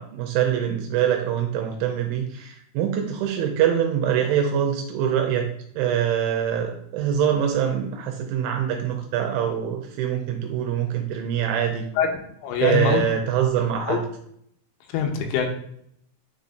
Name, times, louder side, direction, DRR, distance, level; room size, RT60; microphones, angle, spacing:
voice 1, 0.0-11.9 12.6-14.0, right 9 dB, 80° right, 3 dB, 2.8 m, -24 dB
voice 2, 12.4-13.0 13.9-14.0 14.9-15.5, left 7 dB, 90° left, 3 dB, 3.3 m, -23 dB
9.6 x 4.1 x 2.5 m, 0.69 s
omnidirectional pair, 5.8 m